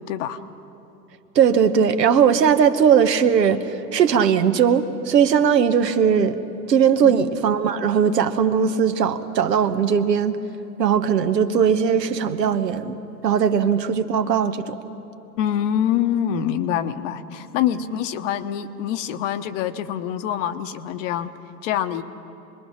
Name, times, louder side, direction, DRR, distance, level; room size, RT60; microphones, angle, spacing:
voice 1, 0.1-0.4 7.0-7.3 15.4-21.3 21.6-22.0, left 10 dB, 50° left, 1.1 m, -25 dB
voice 2, 1.3-6.4 6.7-10.4 10.8-12.9 13.2-14.8 17.7-17.9, right 7 dB, 80° right, 1.2 m, -19 dB
27.0 x 21.0 x 5.8 m
hypercardioid pair, 100°, 49 cm